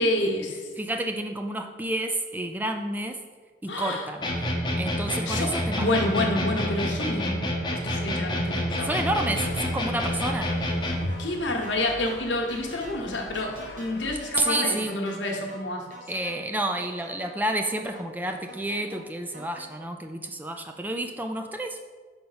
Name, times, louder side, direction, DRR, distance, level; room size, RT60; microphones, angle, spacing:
voice 1, 0.0-0.6 3.7-4.1 5.3-8.9 11.2-15.9, left 1 dB, 85° left, 2 dB, 1.1 m, -28 dB
voice 2, 0.8-3.2 3.6-4.3 4.8-6.0 8.8-10.5 14.4-15.0 16.1-21.8, right 1 dB, 10° right, 5 dB, 0.3 m, -30 dB
sound 1, 4.2-11.2, left 1 dB, 25° left, 0.7 m, -28 dB
sound 2, 9.0-14.2, left 2 dB, 70° left, 0.5 m, -43 dB
sound 3, 11.1-19.7, right 1 dB, 45° right, 1.2 m, -47 dB
5.2 x 4.4 x 5.6 m, 1.4 s
head